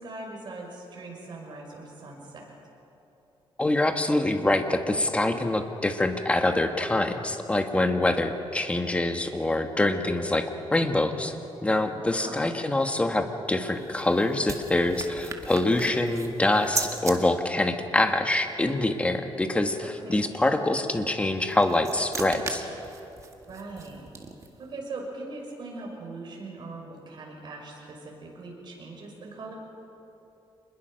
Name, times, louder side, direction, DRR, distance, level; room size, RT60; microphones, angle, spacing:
voice 1, 0.0-2.5 12.1-12.5 19.8-20.2 23.5-24.0 24.6-29.5, right 3 dB, 50° right, -1 dB, 5.9 m, -40 dB
voice 2, 3.6-10.4 10.7-11.3 11.6-22.6, left 2 dB, 15° left, 6 dB, 1.5 m, -25 dB
sound 1, 13.5-17.2 21.3-24.7, right 4 dB, 30° right, 1.9 m, -37 dB
26.0 x 21.0 x 6.5 m, 3.0 s
wide cardioid pair, 145°, 10 cm